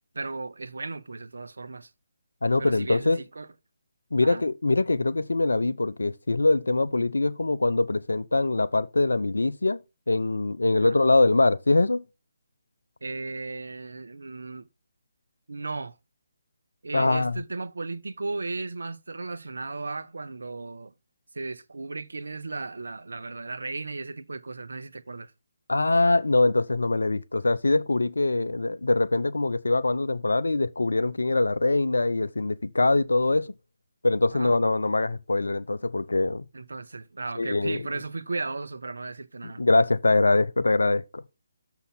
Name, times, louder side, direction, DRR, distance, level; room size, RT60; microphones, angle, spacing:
voice 1, 0.1-1.9 2.6-3.5 4.2-4.4 10.7-11.0 13.0-14.7 15.5-16.0 16.8-20.9 21.3-25.3 34.3-34.6 36.5-39.6, right 3 dB, 75° right, 0.7 m, -35 dB
voice 2, 2.4-3.2 4.1-9.8 10.1-12.0 16.9-17.4 25.7-33.5 34.0-36.4 37.4-37.8 39.6-41.2, left 2 dB, 80° left, 0.6 m, -23 dB
6.9 x 5.8 x 5.7 m
figure-of-eight pair, 145°, 0 cm